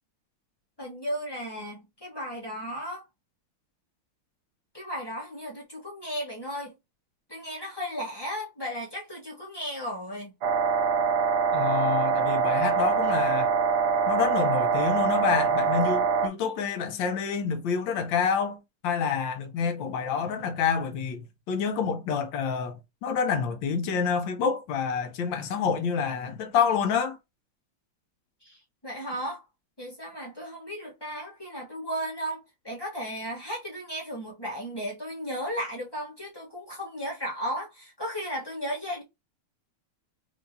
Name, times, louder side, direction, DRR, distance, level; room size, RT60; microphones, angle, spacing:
voice 1, 0.8-3.0 4.7-6.7 7.3-10.3 28.4-28.6 28.8-29.4 29.8-32.4 32.6-39.0, equal, 20° left, 0.6 m, -35 dB
sound 1, 10.4-16.3, right 6 dB, 65° right, 1.2 m, -24 dB
voice 2, 11.5-13.5 14.1-21.2 21.5-27.2, left 6 dB, 70° left, 1.2 m, -28 dB
4.6 x 2.7 x 2.6 m
omnidirectional pair, 2.4 m